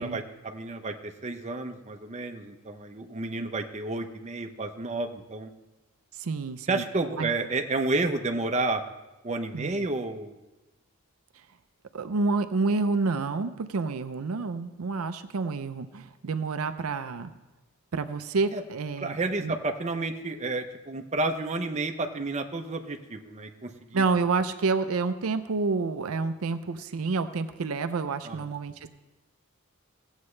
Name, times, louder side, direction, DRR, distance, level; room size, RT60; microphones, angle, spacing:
voice 1, 0.0-5.5 6.7-8.8 9.2-10.4 18.5-18.6 19.0-24.0 28.2-28.4, right 2 dB, 30° right, 5 dB, 0.7 m, -31 dB
voice 2, 6.1-6.8 7.2-7.3 9.5-9.9 11.9-17.3 17.9-19.5 23.9-28.9, right 4 dB, 80° right, 10 dB, 0.5 m, -29 dB
17.0 x 8.1 x 3.2 m, 1.1 s
head